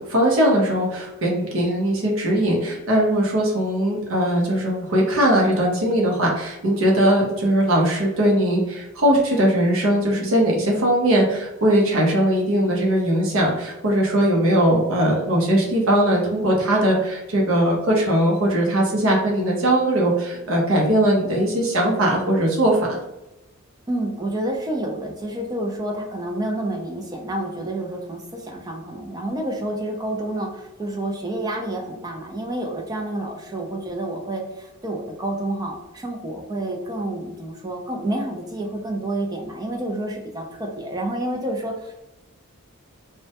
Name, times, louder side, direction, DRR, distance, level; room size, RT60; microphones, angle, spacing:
voice 1, 0.1-23.0, right 1 dB, 65° right, -2 dB, 0.6 m, -20 dB
voice 2, 23.9-42.0, right 1 dB, 15° right, 0 dB, 0.4 m, -29 dB
2.1 x 2.1 x 2.7 m, 0.95 s
head